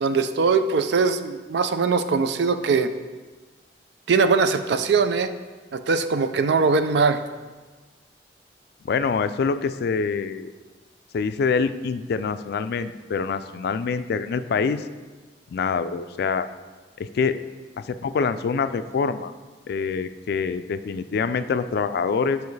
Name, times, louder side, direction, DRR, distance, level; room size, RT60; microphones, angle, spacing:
voice 1, 0.0-2.9 4.1-5.3 5.7-7.2, right 4 dB, 70° right, 10 dB, 0.4 m, -21 dB
voice 2, 8.8-10.5 11.1-14.9 15.5-16.5 17.0-17.4 17.8-19.3 19.7-22.4, left 5 dB, 60° left, 11 dB, 0.3 m, -25 dB
9.3 x 4.7 x 3.2 m, 1.3 s
head